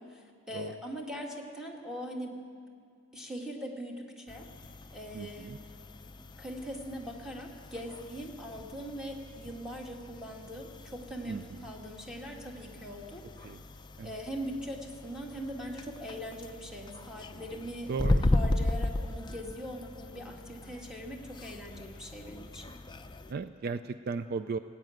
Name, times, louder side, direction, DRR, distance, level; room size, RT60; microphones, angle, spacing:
voice 1, 0.0-2.4 3.1-4.5 4.9-5.6 6.1-13.2 14.0-17.9 18.3-22.6, equal, 5° right, 0 dB, 1.7 m, -41 dB
sound 1, 4.3-23.3, left 1 dB, 20° left, 0.5 m, -37 dB
voice 2, 5.1-5.6 11.3-11.6 13.4-13.6 14.0-14.1 17.9-18.2 23.3-24.6, right 4 dB, 50° right, 12 dB, 0.4 m, -36 dB
17.5 x 8.6 x 9.1 m, 2.2 s
head